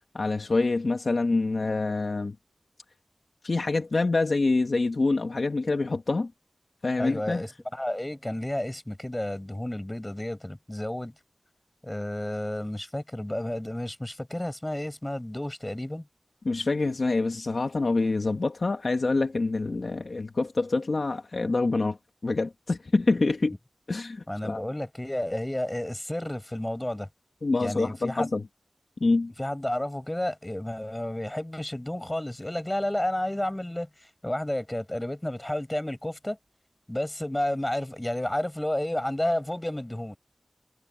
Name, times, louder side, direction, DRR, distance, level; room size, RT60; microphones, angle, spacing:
voice 1, 0.1-2.4 3.4-6.3 6.8-7.4 16.5-22.0 22.2-23.5 23.9-24.6 27.4-28.4 29.0-29.3, left 3 dB, 70° left, 1.8 m, -26 dB
voice 2, 7.0-11.1 11.8-16.1 23.1-23.2 24.3-27.1 27.6-28.3 29.4-36.4 36.9-40.2, left 1 dB, 20° left, 7.4 m, -31 dB
wide cardioid pair, 55°, 0 cm